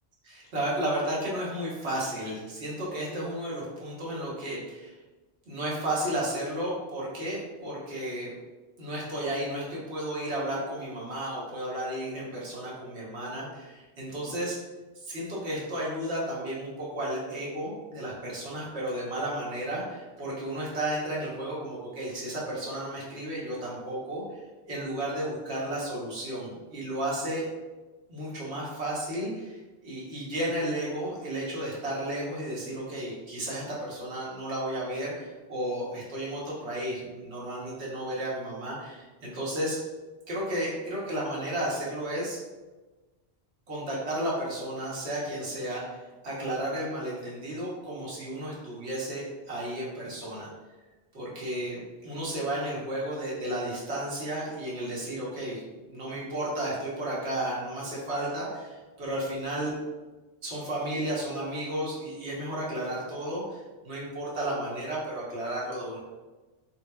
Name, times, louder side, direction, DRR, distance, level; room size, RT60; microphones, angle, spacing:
voice 1, 0.2-4.9 5.5-8.3 8.8-14.6 15.0-24.4 24.7-27.5 28.1-39.8 40.3-42.4 43.7-50.5 51.1-59.8 60.4-66.0, right 1 dB, 75° right, -6 dB, 1.3 m, -33 dB
3.7 x 2.9 x 2.3 m, 1.2 s
omnidirectional pair, 1.1 m